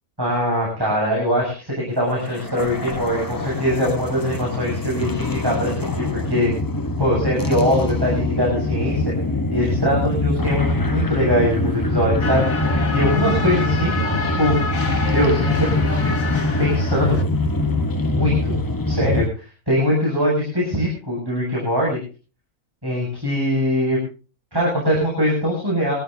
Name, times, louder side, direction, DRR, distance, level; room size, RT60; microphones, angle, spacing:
voice 1, 0.2-6.5 7.0-9.0 9.5-12.5 12.9-14.6 15.1-15.7 16.6-17.2 18.1-18.5 18.9-22.0 22.8-24.0 24.5-25.9, equal, 15° right, -4 dB, 7.5 m, -22 dB
sound 1, 2.1-19.3, left 2 dB, 20° left, 0.7 m, -23 dB
sound 2, 12.2-17.2, left 3 dB, 50° left, 2.6 m, -28 dB
25.5 x 14.0 x 2.6 m, 0.36 s
omnidirectional pair, 1.6 m